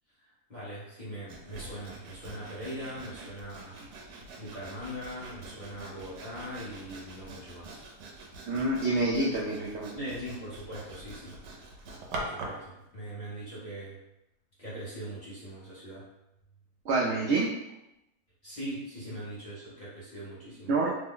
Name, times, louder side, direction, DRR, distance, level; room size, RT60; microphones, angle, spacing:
voice 1, 0.2-3.8 4.4-7.8 9.9-11.4 12.1-14.0 14.6-16.1 18.4-20.7, equal, 35° left, -9 dB, 0.8 m, -41 dB
Sawing, 1.3-12.7, right 2 dB, 90° right, 1.2 m, -44 dB
voice 2, 8.5-9.9 16.9-17.5 20.7-20.9, right 2 dB, 70° right, -5 dB, 0.6 m, -27 dB
3.2 x 2.1 x 3.7 m, 0.88 s
omnidirectional pair, 1.7 m